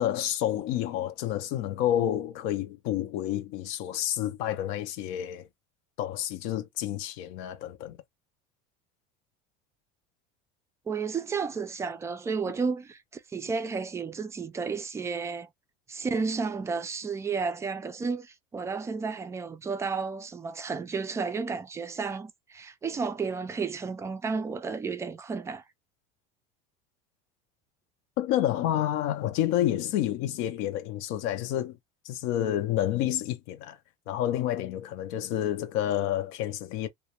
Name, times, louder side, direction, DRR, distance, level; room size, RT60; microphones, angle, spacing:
voice 1, 0.0-5.5 6.0-8.0 28.2-31.8 32.0-33.8 34.1-36.9, left 12 dB, 65° left, 0.5 m, -29 dB
voice 2, 10.9-15.5 15.9-25.6, right 5 dB, 15° right, 0.3 m, -32 dB
2.3 x 2.1 x 2.8 m
cardioid pair, 135°, 18 cm